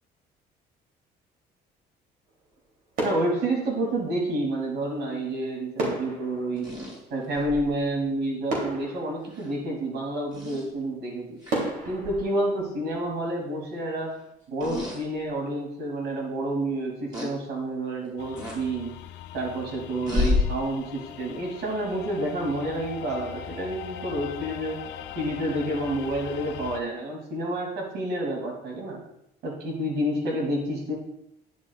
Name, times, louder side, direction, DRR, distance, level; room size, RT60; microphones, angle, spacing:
sound 1, 2.3-2.7 2.9-4.4 5.8-7.7 8.1-8.2 8.5-10.1 10.6-10.7 11.5-13.4 13.7-14.0, right 1 dB, 60° right, 3.1 m, -34 dB
voice 1, 3.0-6.7 7.1-11.4 11.9-14.1 14.5-19.0 19.3-24.8 25.1-29.0 29.4-30.9, right 1 dB, 85° right, 0 dB, 2.8 m, -29 dB
sound 2, 6.6-7.7 9.3-9.5 10.3-10.6 11.4-11.6 12.0-12.2 14.6-15.0 15.6-15.7 17.1-17.3 18.4-18.6 20.1-20.4, left 3 dB, 25° right, 3.5 m, -29 dB
sound 3, 18.2-26.8, left 10 dB, 85° left, 0.5 m, -41 dB
10.5 x 7.8 x 2.4 m, 0.80 s
cardioid pair, 110°, 17 cm